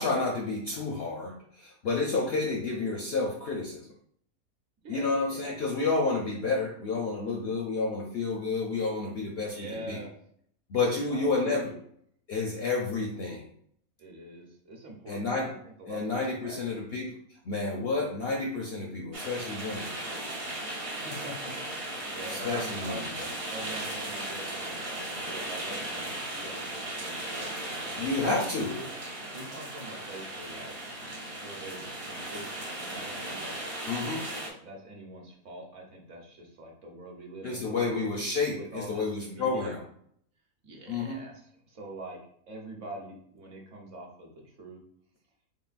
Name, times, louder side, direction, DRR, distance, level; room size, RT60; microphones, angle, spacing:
voice 1, 0.0-3.9 4.9-10.0 10.7-11.7 12.3-13.5 15.1-15.5 15.9-17.2 17.4-19.9 22.3-23.3 28.0-28.7 33.9-34.3 37.4-39.8 40.9-41.2, left 3 dB, 65° left, 0 dB, 0.6 m, -30 dB
voice 2, 4.8-5.6 9.5-10.1 10.7-11.8 14.0-16.8 20.9-23.1 23.5-27.8 28.2-28.9 29.3-30.7 31.4-33.6 34.5-38.1 38.5-39.8 40.6-42.2 42.5-44.8, right 1 dB, 60° right, 0 dB, 1.1 m, -44 dB
sound 1, 19.1-34.5, right 1 dB, 40° right, 0.5 m, -37 dB
3.8 x 3.7 x 2.4 m, 0.64 s
omnidirectional pair, 1.5 m